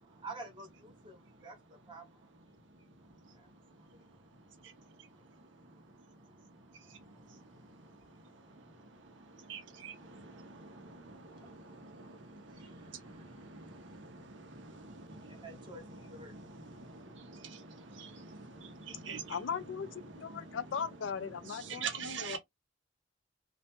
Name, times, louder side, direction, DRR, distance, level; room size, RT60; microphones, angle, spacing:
voice 1, 0.2-1.2 1.4-1.6 1.9-2.0 3.4-3.5 3.9-4.0 6.9-7.2 8.8-8.9 10.2-10.3 11.3-11.4 12.6-13.0 15.3-16.3 17.9-18.0, right 3 dB, 25° right, 0.7 m, -49 dB
voice 2, 7.2-8.6 8.9-19.4 20.1-20.6 21.5-22.4, right 5 dB, 80° right, 0.8 m, -46 dB
voice 3, 19.3-22.4, left 6 dB, 80° left, 0.4 m, -38 dB
2.4 x 2.2 x 2.8 m
head